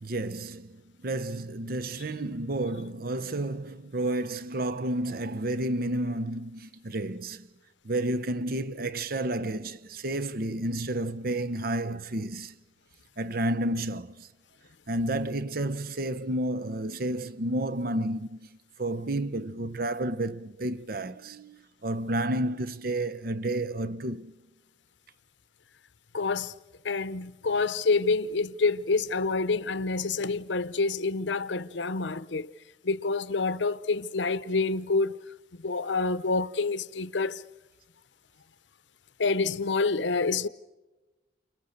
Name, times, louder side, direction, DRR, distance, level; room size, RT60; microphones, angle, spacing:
voice 1, 0.0-7.5 7.8-12.6 13.2-14.3 14.9-18.4 18.8-24.3, right 1 dB, 55° right, 0.8 m, -31 dB
voice 2, 26.1-26.5 26.8-32.5 32.8-35.2 35.5-37.4 39.2-40.5, left 3 dB, 85° left, 0.8 m, -27 dB
29.5 x 26.0 x 6.6 m
head